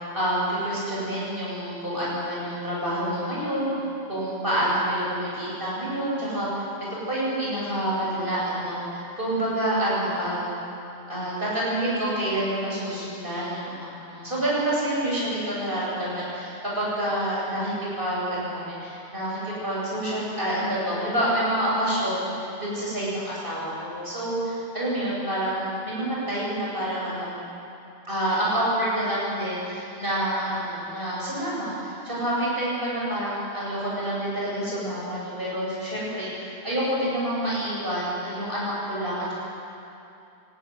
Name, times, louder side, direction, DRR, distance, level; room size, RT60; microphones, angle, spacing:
voice 1, 0.1-3.7 4.1-6.5 6.9-10.6 11.1-27.4 28.1-39.3, right 1 dB, 55° right, -7 dB, 8.3 m, -28 dB
23.5 x 18.5 x 9.6 m, 2.7 s
omnidirectional pair, 1.1 m